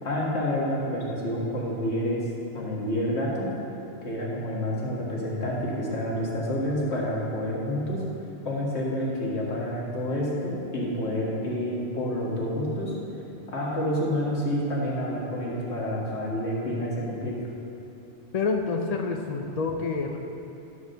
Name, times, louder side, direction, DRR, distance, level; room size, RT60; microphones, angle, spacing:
voice 1, 0.0-2.3 2.5-3.5 4.0-8.0 8.4-12.9 13.5-17.3, equal, 60° left, -4 dB, 2.0 m, -28 dB
voice 2, 18.3-20.2, left 4 dB, 45° left, 3 dB, 0.6 m, -28 dB
12.0 x 4.7 x 6.7 m, 2.8 s
omnidirectional pair, 1.2 m